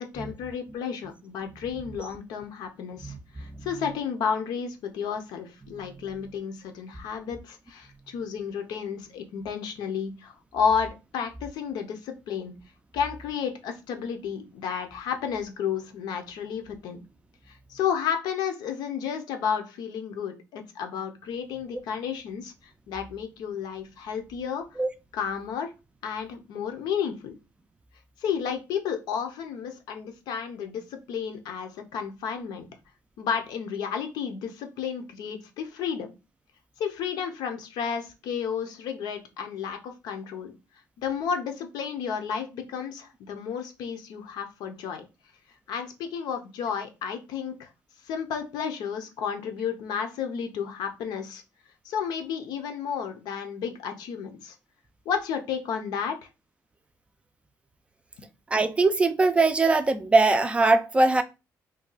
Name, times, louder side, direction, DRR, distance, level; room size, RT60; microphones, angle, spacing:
voice 1, 0.0-12.5 12.9-17.0 17.5-22.5 22.9-24.7 25.1-25.7 26.0-27.3 28.2-32.7 33.2-36.1 36.8-40.5 41.0-45.1 45.7-47.7 48.0-51.4 51.8-54.5 55.1-56.3, left 7 dB, 90° left, 0.7 m, -32 dB
voice 2, 58.5-61.2, right 3 dB, 15° right, 0.3 m, -21 dB
2.7 x 2.3 x 3.8 m
cardioid pair, 135°, 7 cm